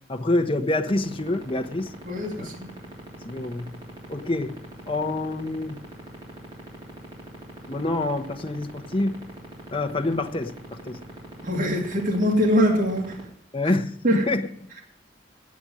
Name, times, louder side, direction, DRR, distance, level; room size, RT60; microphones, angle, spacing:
voice 1, 0.1-1.9 2.4-2.5 3.2-3.8 4.1-4.6 4.9-5.8 7.7-9.2 9.7-11.0 13.5-14.5, left 2 dB, 30° left, 6 dB, 0.8 m, -26 dB
sound 1, 0.9-13.2, right 2 dB, 25° right, 3.4 m, -40 dB
voice 2, 2.1-2.7 11.4-13.1 14.0-14.2, equal, 45° right, -1 dB, 2.2 m, -23 dB
8.5 x 7.9 x 8.9 m, 0.65 s
head